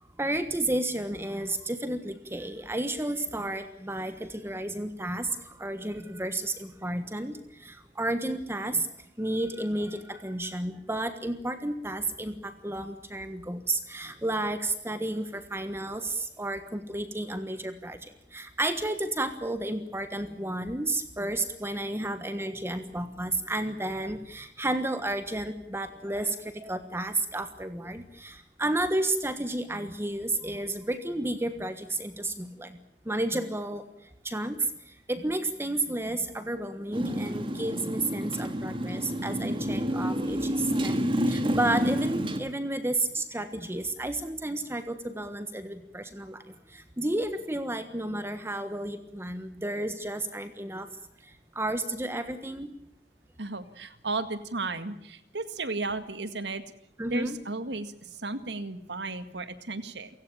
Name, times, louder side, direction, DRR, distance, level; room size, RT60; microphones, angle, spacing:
voice 1, 0.2-8.9 9.2-32.8 33.0-33.9 34.2-41.0 41.3-50.9 51.2-52.7 57.0-57.4, right 1 dB, 15° right, 9 dB, 1.4 m, -32 dB
Motorcycle, 36.9-42.4, equal, 30° right, 2.0 m, -29 dB
voice 2, 53.4-56.6 57.1-60.1, right 3 dB, 75° right, 11 dB, 2.0 m, -34 dB
28.5 x 17.0 x 8.8 m, 0.74 s
head